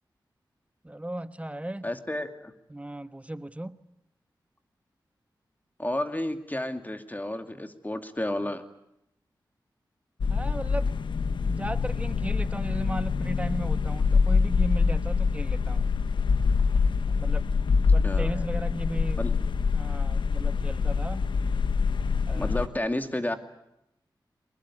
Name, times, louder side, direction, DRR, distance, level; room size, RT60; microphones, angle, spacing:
voice 1, 0.8-1.9 2.7-3.8 10.3-10.9 11.5-15.9 17.1-17.5 17.9-19.4 19.7-21.3 22.3-22.7, right 1 dB, 15° right, 12 dB, 1.2 m, -36 dB
voice 2, 1.8-2.5 5.8-8.6 18.0-18.3 19.2-19.3 22.3-23.4, left 1 dB, 20° left, 8 dB, 2.4 m, -31 dB
sound 1, 10.2-22.7, left 5 dB, 85° left, 1.1 m, -25 dB
24.5 x 20.5 x 9.9 m, 0.81 s
cardioid pair, 50°, 8 cm